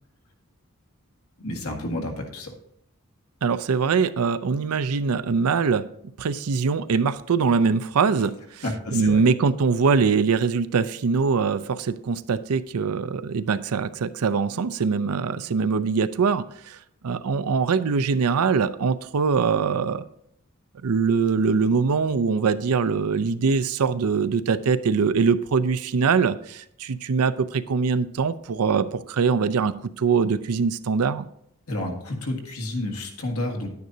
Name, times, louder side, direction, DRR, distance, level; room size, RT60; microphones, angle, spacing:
voice 1, 1.4-2.5 8.6-9.2 31.7-33.7, left 1 dB, 90° left, 2 dB, 1.7 m, -30 dB
voice 2, 3.4-5.8 6.2-8.6 8.9-16.8 17.0-20.0 20.8-31.3, right 5 dB, 90° right, 13 dB, 0.5 m, -23 dB
10.0 x 9.4 x 2.7 m, 0.71 s
head